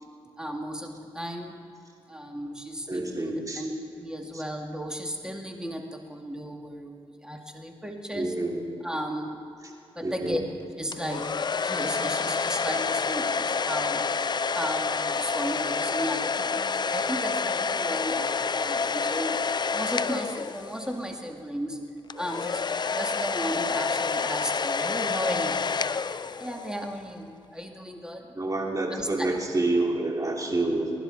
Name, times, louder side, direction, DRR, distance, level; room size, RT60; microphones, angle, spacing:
voice 1, 0.4-1.5 2.1-8.3 8.8-9.4 10.0-10.4 10.8-11.3 11.6-14.1 14.5-19.4 19.7-21.8 22.2-25.6 26.4-28.3 29.0-29.3, equal, 5° right, 2 dB, 2.4 m, -35 dB
voice 2, 2.9-3.6 4.3-4.4 8.1-8.6 9.6-9.7 10.0-10.4 28.3-30.9, right 2 dB, 30° right, 0 dB, 3.3 m, -28 dB
sound 1, 10.9-21.0 22.1-26.8, left 5 dB, 40° left, 0.5 m, -28 dB
23.0 x 11.0 x 4.3 m, 2.7 s
supercardioid pair, 50°, 11 cm